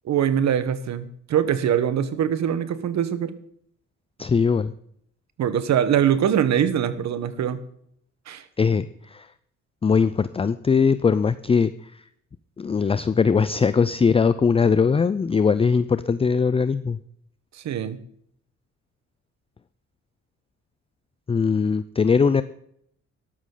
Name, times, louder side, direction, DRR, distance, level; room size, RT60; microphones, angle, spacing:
voice 1, 0.0-3.3 5.4-7.6 8.3-8.4 17.5-18.0, right 9 dB, 65° right, 13 dB, 1.2 m, -23 dB
voice 2, 4.2-4.7 8.6-9.3 9.8-11.7 12.6-17.0 21.3-22.4, left 5 dB, 20° left, 14 dB, 0.4 m, -20 dB
12.5 x 12.5 x 3.9 m, 0.69 s
cardioid pair, 90°, 30 cm